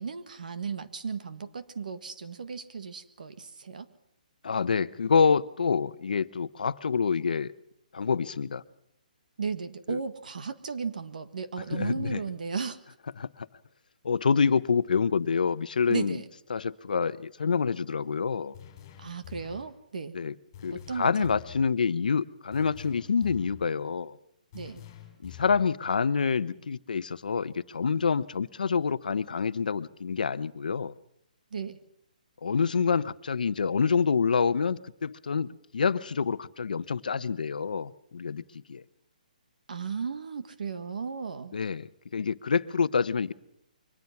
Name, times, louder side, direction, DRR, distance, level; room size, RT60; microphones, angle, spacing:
voice 1, 0.0-3.9 9.4-12.8 15.9-16.2 19.0-20.2 20.7-21.3 24.5-24.8 31.5-31.8 39.7-41.6, right 5 dB, 65° right, 10 dB, 1.7 m, -35 dB
voice 2, 4.4-7.5 7.9-8.6 9.9-10.0 11.7-12.2 13.2-13.5 14.0-16.2 16.5-18.5 20.1-20.3 20.6-24.1 25.2-30.9 32.4-38.4 38.7-38.8 41.5-43.3, left 5 dB, 70° left, 14 dB, 0.9 m, -27 dB
sound 1, 18.5-19.7 20.5-21.7 22.5-23.7 24.5-25.7, left 10 dB, 20° left, 3.8 m, -47 dB
23.5 x 19.5 x 5.9 m, 0.78 s
hypercardioid pair, 175°, 5 cm